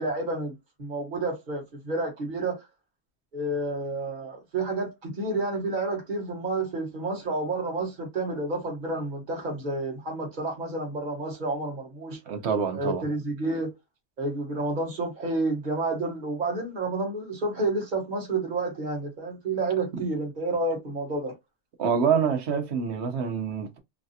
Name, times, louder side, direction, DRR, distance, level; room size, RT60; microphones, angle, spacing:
voice 1, 0.0-2.6 3.3-12.2 12.7-13.7 14.2-21.3, right 2 dB, 45° right, 1.4 m, -30 dB
voice 2, 12.3-13.0 19.9-20.0 21.8-23.8, right 6 dB, 90° right, 1.1 m, -26 dB
3.2 x 2.3 x 2.7 m
omnidirectional pair, 1.1 m